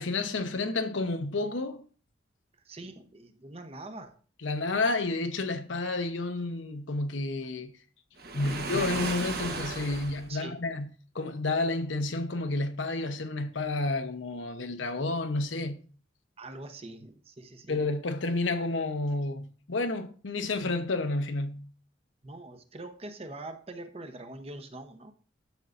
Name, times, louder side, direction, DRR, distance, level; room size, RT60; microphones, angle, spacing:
voice 1, 0.0-1.9 4.4-7.7 8.3-10.9 11.1-15.8 17.7-21.7, left 2 dB, 85° left, 0.9 m, -30 dB
voice 2, 2.6-4.2 8.4-8.5 10.3-10.6 16.4-17.8 22.2-25.1, right 2 dB, 30° right, 0.9 m, -43 dB
Waves surf, 8.2-10.3, right 3 dB, 55° right, 1.2 m, -35 dB
11.5 x 7.0 x 2.6 m
head